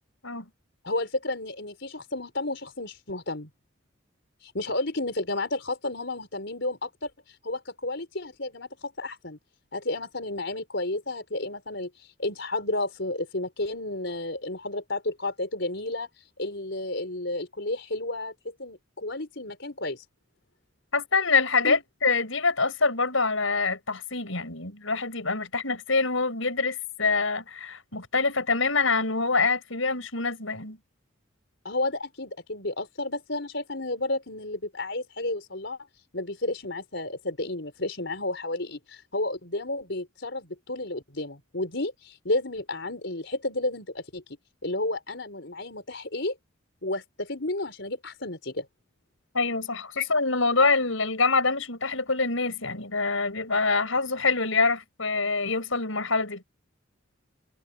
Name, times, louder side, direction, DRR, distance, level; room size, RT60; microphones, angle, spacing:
voice 1, 0.8-3.5 4.4-9.4 9.7-20.0 21.6-21.8 31.6-35.8 36.1-44.4 44.6-46.3 46.8-48.7 50.0-50.1, left 2 dB, 60° left, 5.3 m, -32 dB
voice 2, 20.9-30.8 49.3-56.4, left 4 dB, 75° left, 6.4 m, -25 dB
head